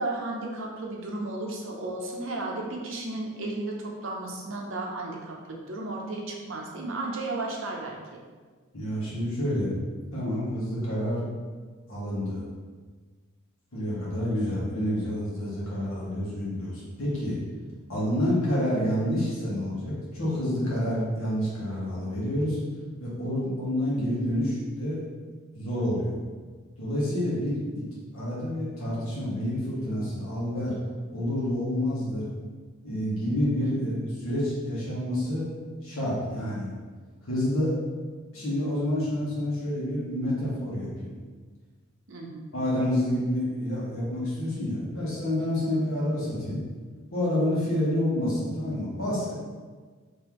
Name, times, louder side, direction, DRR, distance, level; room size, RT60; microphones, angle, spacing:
voice 1, 0.0-8.2 33.6-33.9 42.1-42.7 45.7-45.8 47.7-47.9, right 2 dB, 65° right, -1 dB, 0.7 m, -34 dB
voice 2, 8.7-9.7 10.1-11.3 11.9-12.4 13.7-17.4 17.9-22.6 23.0-25.0 25.5-26.1 26.8-27.6 28.1-30.7 31.1-32.3 32.8-35.5 35.8-36.7 37.2-37.7 38.3-41.1 42.5-46.6 47.1-49.3, left 1 dB, 80° left, -7 dB, 1.4 m, -28 dB
3.7 x 3.0 x 3.0 m, 1.5 s
head